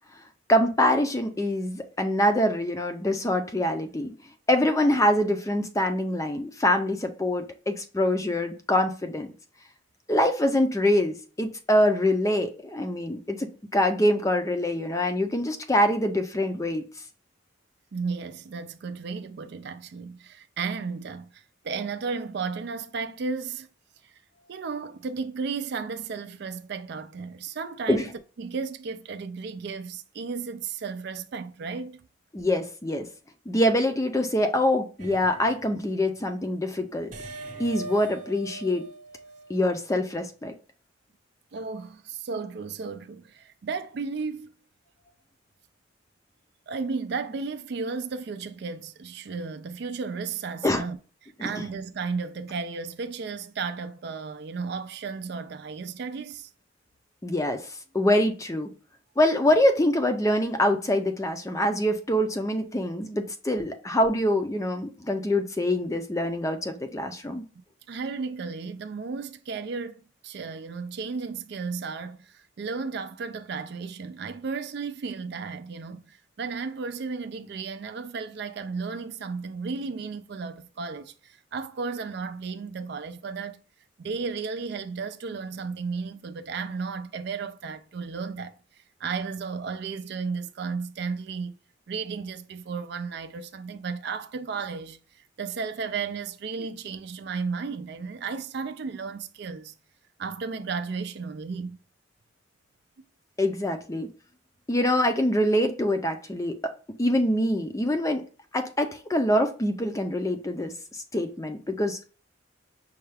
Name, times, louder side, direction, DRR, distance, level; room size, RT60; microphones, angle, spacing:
voice 1, 0.5-4.1 4.5-9.3 10.1-16.8 27.9-28.1 32.3-33.1 33.5-37.1 37.6-38.9 39.5-40.5 50.6-50.8 51.4-51.5 57.2-57.6 57.9-58.7 59.2-67.4 103.4-104.1 104.7-106.7 107.0-108.2 108.5-112.1, left 1 dB, 15° left, 0.5 m, -25 dB
voice 2, 17.9-23.7 24.0-24.1 24.5-28.1 28.4-32.1 41.5-44.5 46.7-51.0 51.4-56.5 67.9-83.6 84.0-88.6 89.0-91.6 91.9-99.7 100.2-101.8, right 5 dB, 60° right, 0.4 m, -34 dB
sound 1, 35.0-35.9 37.1-39.9, right 2 dB, 40° right, 0.9 m, -41 dB
5.5 x 2.3 x 3.3 m
head